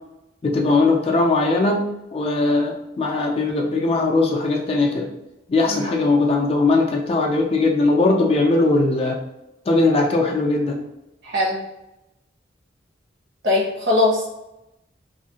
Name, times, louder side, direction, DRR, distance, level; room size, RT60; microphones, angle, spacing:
voice 1, 0.4-5.1 5.5-9.2 9.7-10.8, left 3 dB, 30° left, 1 dB, 0.3 m, -19 dB
voice 2, 11.2-11.6 13.4-14.3, left 2 dB, 65° right, -3 dB, 1.0 m, -20 dB
2.6 x 2.4 x 2.8 m, 0.92 s
head